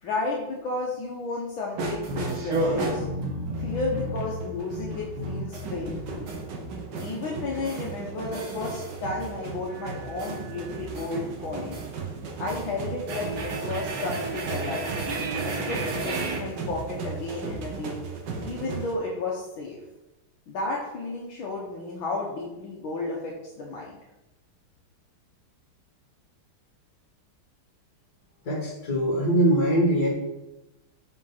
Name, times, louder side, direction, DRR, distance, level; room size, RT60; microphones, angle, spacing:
voice 1, 0.0-2.1 2.4-3.0 3.6-6.3 7.0-11.8 12.4-14.9 15.4-18.0 18.4-19.8 20.5-24.0, left 3 dB, 70° left, -3 dB, 1.8 m, -33 dB
sound 1, 1.8-6.4 7.0-7.2 7.7-7.9 8.3-9.3 9.7-11.2 11.7-11.9 12.3-12.7 13.1-16.4, right 1 dB, 80° right, 2.2 m, -32 dB
sound 2, 3.5-18.9, right 4 dB, 60° right, 1.6 m, -36 dB
voice 2, 28.5-30.1, right 1 dB, 50° left, -1 dB, 2.3 m, -22 dB
5.8 x 5.1 x 5.7 m, 0.98 s
omnidirectional pair, 2.3 m